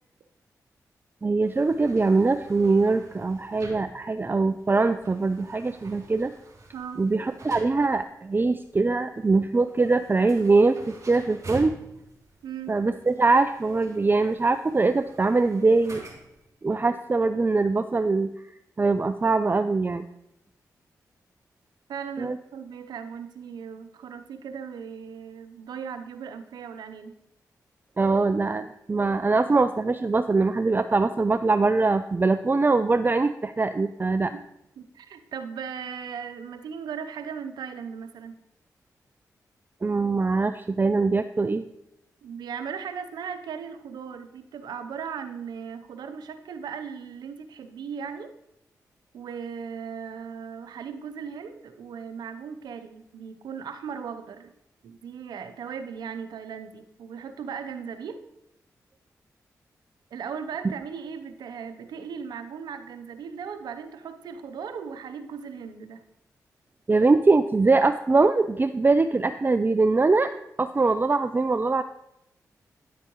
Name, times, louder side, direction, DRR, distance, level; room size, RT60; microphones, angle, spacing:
voice 1, 1.2-6.3 7.0-11.7 12.7-16.0 16.6-18.3 18.8-20.0 22.2-22.4 28.0-34.3 39.8-41.6 66.9-70.3 70.6-71.8, right 3 dB, 30° right, 11 dB, 0.4 m, -22 dB
sound 1, 1.4-16.5, right 2 dB, 50° right, 3.0 m, -47 dB
voice 2, 12.4-12.7 21.9-27.1 34.3-34.4 34.8-38.4 42.2-48.3 49.1-54.5 54.8-58.2 60.1-66.0, right 6 dB, 85° right, 8 dB, 0.7 m, -37 dB
10.0 x 8.3 x 3.0 m, 0.82 s
supercardioid pair, 45°, 7 cm